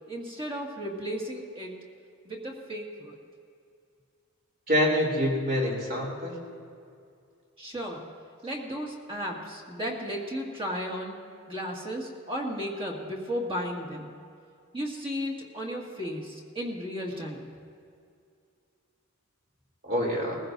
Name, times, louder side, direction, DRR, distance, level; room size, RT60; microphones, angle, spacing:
voice 1, 0.1-1.7 2.2-3.2 7.6-8.1 8.4-11.2 11.5-14.1 14.7-17.5, equal, 25° right, -1 dB, 2.0 m, -34 dB
voice 2, 4.7-6.3 19.8-20.4, equal, 45° right, -2 dB, 3.1 m, -26 dB
21.0 x 15.0 x 2.6 m, 2.4 s
head